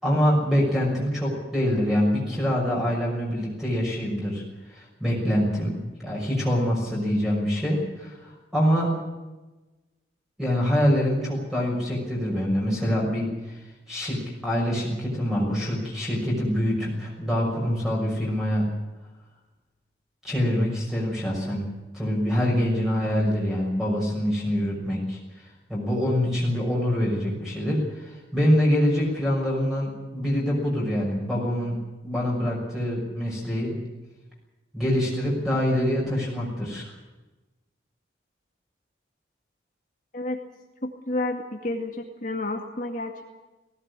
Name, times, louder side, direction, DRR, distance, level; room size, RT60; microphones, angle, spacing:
voice 1, 0.0-4.4 4.7-8.9 10.4-13.6 13.9-18.7 20.2-21.6 21.9-25.2 25.7-31.8 32.0-33.8 34.7-36.9, equal, ahead, -4 dB, 6.2 m, -25 dB
voice 2, 40.8-43.2, left 2 dB, 45° left, 2 dB, 2.2 m, -30 dB
19.5 x 17.0 x 9.8 m, 1.1 s
head